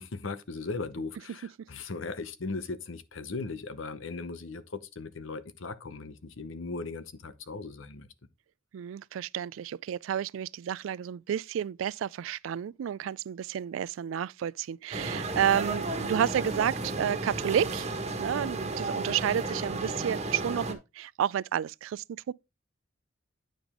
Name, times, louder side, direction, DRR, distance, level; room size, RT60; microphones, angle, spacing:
voice 1, 0.0-8.1, left 3 dB, 90° left, 0.8 m, -38 dB
voice 2, 8.7-17.9 18.2-22.3, right 9 dB, 85° right, 0.3 m, -31 dB
sound 1, 14.9-20.7, right 2 dB, 35° right, 1.4 m, -33 dB
9.0 x 5.1 x 3.6 m
head